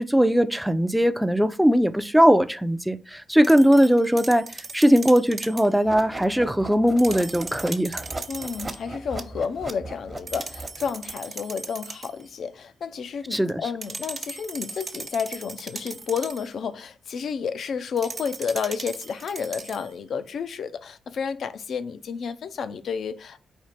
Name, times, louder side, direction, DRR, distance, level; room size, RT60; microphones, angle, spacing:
voice 1, 0.0-4.5 4.7-8.0 13.3-13.6, equal, 5° right, 0.5 m, -19 dB
sound 1, 3.4-5.7 6.9-8.8 10.3-12.2 13.8-16.5 18.0-19.9, right 4 dB, 50° right, 0.6 m, -38 dB
sound 2, 5.8-11.1, right 2 dB, 35° right, 1.0 m, -38 dB
voice 2, 8.3-23.4, left 6 dB, 70° left, 0.5 m, -31 dB
4.4 x 2.4 x 4.8 m
supercardioid pair, 55°, 0 cm